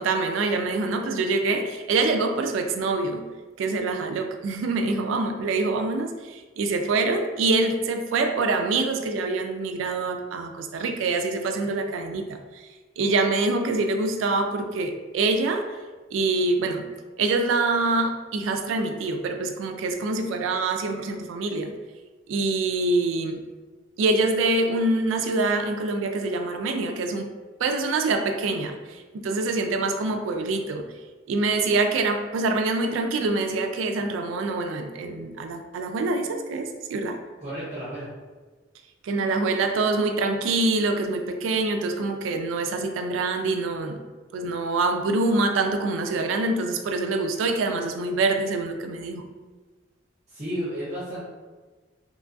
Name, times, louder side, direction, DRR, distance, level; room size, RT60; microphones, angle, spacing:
voice 1, 0.0-3.3 3.6-12.7 13.0-15.7 16.1-16.9 17.2-21.7 22.3-23.4 24.0-27.3 27.6-30.9 31.3-37.2 39.0-44.0 44.3-49.3, right 3 dB, 85° right, 5 dB, 0.3 m, -25 dB
voice 2, 37.4-38.1 50.3-51.2, equal, 35° right, -10 dB, 0.7 m, -32 dB
3.0 x 2.2 x 2.5 m, 1.3 s
head